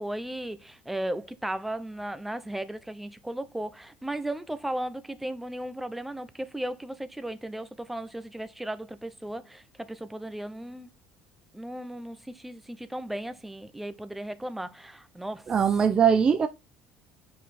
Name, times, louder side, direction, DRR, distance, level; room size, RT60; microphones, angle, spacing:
voice 1, 0.0-10.9 11.5-15.5, right 1 dB, 5° right, 0.8 m, -36 dB
voice 2, 15.5-16.5, right 7 dB, 30° right, 0.7 m, -21 dB
5.8 x 5.3 x 4.3 m
supercardioid pair, 110°, 3 cm